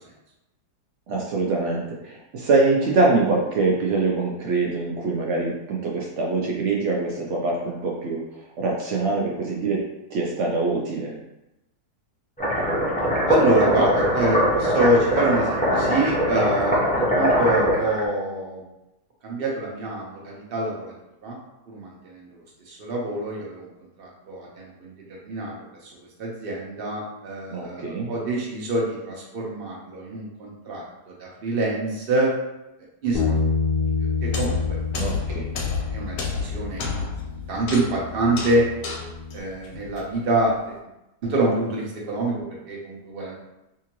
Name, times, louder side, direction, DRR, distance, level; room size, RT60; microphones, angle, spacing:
voice 1, 1.1-8.2 8.6-9.8 10.1-11.2 27.5-28.1 35.0-35.5, right 3 dB, 75° right, -3 dB, 0.6 m, -24 dB
sound 1, 12.4-18.0, equal, 10° left, 0.3 m, -22 dB
voice 2, 13.3-18.6 19.2-20.9 21.2-21.3 21.7-22.3 22.7-23.7 24.0-24.9 25.2-25.5 25.8-25.9 26.2-30.8 31.2-32.3 33.0-33.3 34.2-34.8 35.9-37.0 37.5-38.7 39.3-40.7 41.2-43.3, right 2 dB, 45° right, -3 dB, 0.8 m, -25 dB
Bass guitar, 33.1-39.4, left 5 dB, 85° left, 0.5 m, -28 dB
sound 2, 34.2-40.5, left 5 dB, 70° left, 1.0 m, -31 dB
3.6 x 2.8 x 2.9 m, 0.93 s
omnidirectional pair, 1.8 m